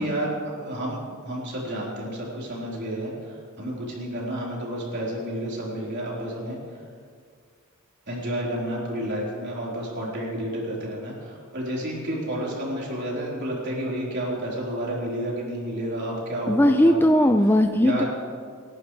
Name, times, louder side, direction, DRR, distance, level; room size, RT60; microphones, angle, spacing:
voice 1, 0.0-6.6 8.1-17.2 17.8-18.0, right 1 dB, 50° right, -5 dB, 4.2 m, -30 dB
voice 2, 16.5-18.0, left 1 dB, 10° left, 7 dB, 0.4 m, -18 dB
28.5 x 11.5 x 3.3 m, 2.1 s
head